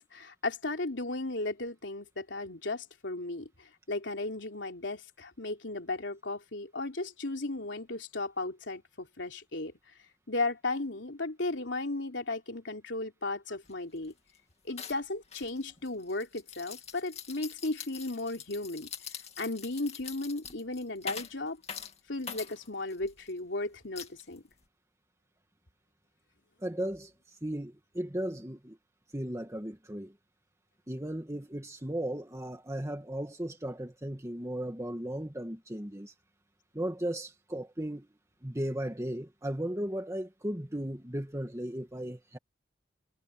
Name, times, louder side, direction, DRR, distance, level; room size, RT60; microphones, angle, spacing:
voice 1, 0.0-9.7 10.3-14.1 14.6-18.9 19.4-21.6 22.1-24.4, left 2 dB, 85° left, 3.4 m, -35 dB
sound 1, 13.6-13.7 14.0-14.4 14.8-23.3 24.0-24.6, left 7 dB, 35° left, 2.4 m, -44 dB
voice 2, 26.6-28.8 29.1-30.1 30.9-36.1 36.7-38.1 38.4-42.4, right 1 dB, 15° right, 2.1 m, -36 dB
head